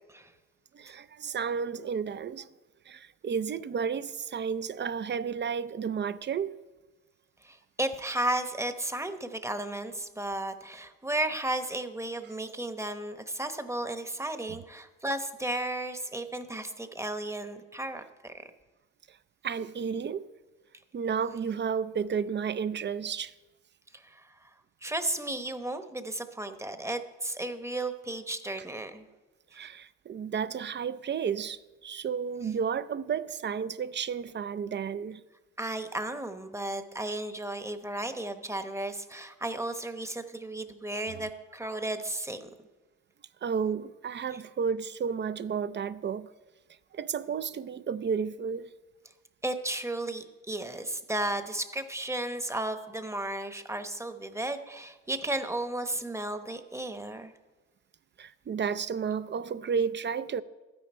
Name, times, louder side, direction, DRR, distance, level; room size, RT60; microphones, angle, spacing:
voice 1, 0.7-2.5 2.9-6.5 19.1-19.2 19.4-20.3 20.9-23.3 29.5-35.2 41.1-41.3 43.4-46.3 46.9-48.7 58.2-60.4, right 6 dB, 40° right, 0.5 m, -32 dB
voice 2, 7.4-18.5 23.9-24.3 24.8-29.1 35.6-42.5 49.4-57.3, right 1 dB, 10° right, 0.9 m, -34 dB
13.0 x 9.6 x 4.4 m
cardioid pair, 90°, 30 cm